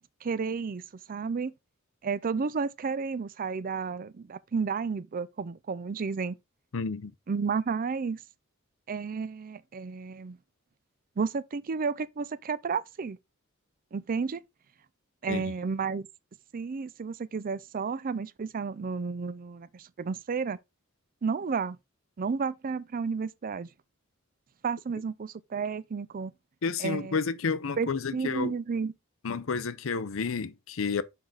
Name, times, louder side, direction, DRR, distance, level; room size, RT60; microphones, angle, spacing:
voice 1, 0.2-0.8 1.1-1.5 2.0-6.4 7.3-8.2 8.9-10.4 11.2-13.2 13.9-14.4 15.2-16.1 16.5-20.6 21.2-21.8 22.2-23.7 24.6-26.3 26.8-27.2 27.8-28.9, right 5 dB, 45° right, 0.4 m, -32 dB
voice 2, 6.7-7.1 15.3-15.4 26.6-28.5 29.2-31.0, left 5 dB, 70° left, 0.6 m, -30 dB
6.7 x 4.8 x 3.9 m
head